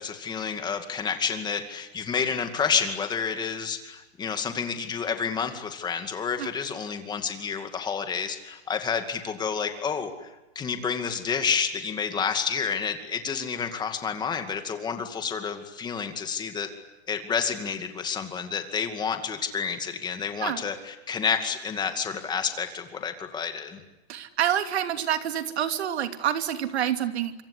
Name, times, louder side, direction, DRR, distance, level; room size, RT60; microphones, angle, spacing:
voice 1, 0.0-10.3 10.6-16.7 17.1-23.8, left 6 dB, 15° left, 7 dB, 2.3 m, -29 dB
voice 2, 24.1-27.3, right 10 dB, 80° right, 8 dB, 2.9 m, -27 dB
26.0 x 25.5 x 8.5 m, 1.0 s
supercardioid pair, 165°, 32 cm